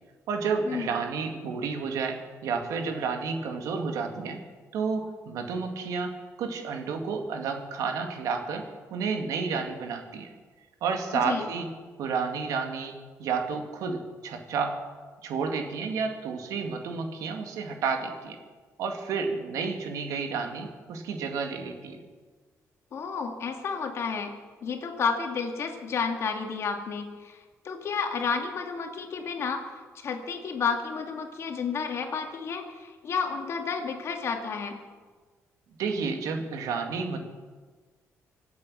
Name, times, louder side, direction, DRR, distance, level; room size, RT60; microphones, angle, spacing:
voice 1, 0.3-4.4 4.7-8.7 8.9-10.3 10.8-11.7 12.0-14.8 15.2-18.4 18.8-22.0 35.8-37.2, right 5 dB, 85° right, 4 dB, 2.1 m, -31 dB
voice 2, 22.9-24.3 24.6-34.8, left 5 dB, 50° left, 4 dB, 2.2 m, -31 dB
25.0 x 8.5 x 6.4 m, 1.4 s
cardioid pair, 135°, 6 cm